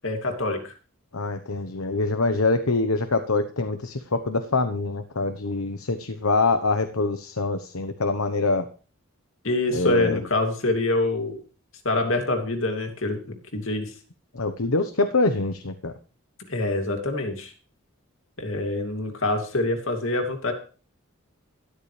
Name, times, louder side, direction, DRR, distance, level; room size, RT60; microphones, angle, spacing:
voice 1, 0.0-0.7 9.4-11.4 11.8-13.9 16.5-17.5 18.4-20.5, left 2 dB, 65° left, 4 dB, 2.8 m, -25 dB
voice 2, 1.1-8.7 9.7-10.2 14.3-15.9, left 3 dB, 90° left, 9 dB, 1.1 m, -25 dB
13.0 x 13.0 x 3.4 m, 0.36 s
head